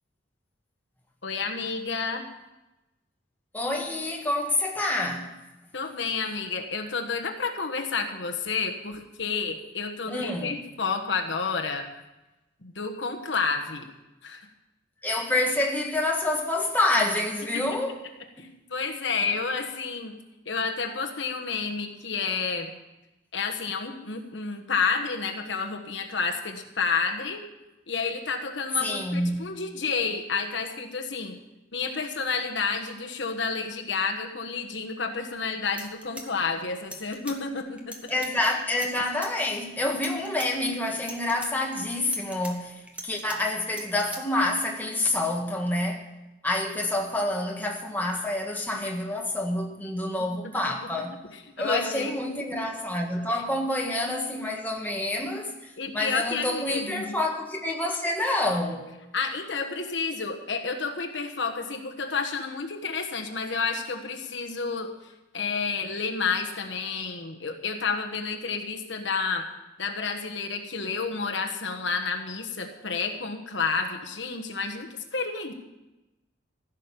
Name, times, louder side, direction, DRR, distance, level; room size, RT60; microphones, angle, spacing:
voice 1, 1.2-2.2 5.7-11.9 12.6-13.9 14.2-14.5 17.5-17.6 18.4-20.2 20.4-22.7 23.3-27.4 27.9-31.4 31.7-38.1 50.3-50.4 51.6-52.1 53.3-53.4 55.8-57.2 59.1-69.5 69.8-75.5, left 5 dB, 70° left, 1.4 m, -30 dB
voice 2, 3.5-5.3 10.1-10.6 15.0-18.0 28.8-29.5 38.1-46.1 46.4-51.2 51.6-58.8, left 1 dB, 10° left, 1.6 m, -28 dB
sound 1, 35.3-35.4 35.7-37.4 37.8-38.3 38.7-39.3 39.8-40.5 40.9-41.5 42.0-43.4 43.7-44.2, right 1 dB, 5° right, 1.5 m, -41 dB
15.5 x 6.5 x 9.0 m
head